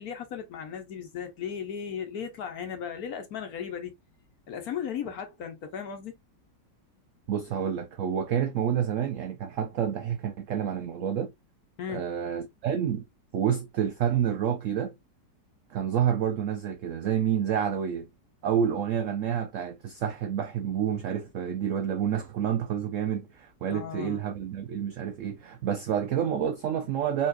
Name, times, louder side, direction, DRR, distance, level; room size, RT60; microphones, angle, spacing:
voice 1, 0.0-3.9 4.5-6.1 11.8-12.1 23.7-24.2, left 7 dB, 60° left, 1.3 m, -36 dB
voice 2, 7.3-11.3 11.9-13.1 13.3-15.0 15.7-18.1 18.4-27.3, right 9 dB, 80° right, 0.7 m, -29 dB
4.1 x 3.0 x 2.5 m
omnidirectional pair, 1.9 m